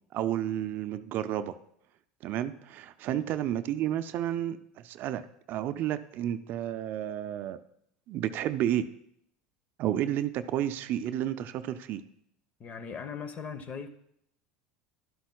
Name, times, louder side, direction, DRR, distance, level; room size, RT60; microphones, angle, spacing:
voice 1, 0.1-1.5 2.2-7.6 8.1-8.9 9.8-12.0, right 11 dB, 50° right, 11 dB, 0.5 m, -31 dB
voice 2, 12.6-13.9, left 6 dB, 35° left, 11 dB, 1.0 m, -39 dB
12.0 x 11.5 x 2.3 m, 0.74 s
hypercardioid pair, 95°, 4 cm